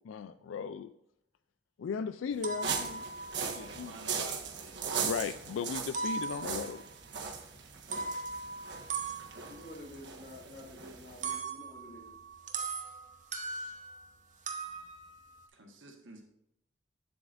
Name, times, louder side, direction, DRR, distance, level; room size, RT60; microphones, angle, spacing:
voice 1, 0.1-0.9 1.8-3.0 3.5-3.9 5.0-6.8, left 6 dB, 85° left, 13 dB, 0.3 m, -36 dB
sound 1, 2.3-4.7 5.0-5.5 5.9-6.8 7.7-14.1 14.5-15.5, right 4 dB, 40° right, 0.8 m, -40 dB
sound 2, 2.6-11.4, right 6 dB, 65° right, 1.3 m, -39 dB
voice 2, 3.6-4.8 15.5-16.2, right 2 dB, 80° right, 1 dB, 1.3 m, -50 dB
voice 3, 9.5-12.2, left 1 dB, 60° left, -2 dB, 2.7 m, -49 dB
8.6 x 7.6 x 2.5 m, 0.78 s
head